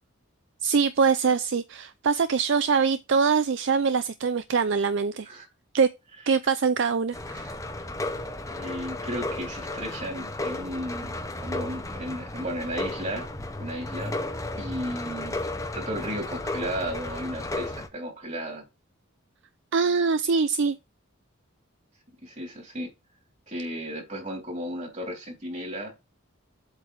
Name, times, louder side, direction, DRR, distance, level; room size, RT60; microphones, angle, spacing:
voice 1, 0.6-5.3 5.7-5.9 6.3-7.5 19.7-20.8, right 5 dB, 55° right, 0.4 m, -23 dB
sound 1, 7.1-17.9, left 2 dB, 15° left, 0.8 m, -34 dB
voice 2, 8.5-13.3 13.6-14.1 14.5-15.4 15.7-18.6 22.2-22.9 23.5-25.9, equal, 35° right, 3.4 m, -34 dB
8.1 x 3.4 x 6.3 m
head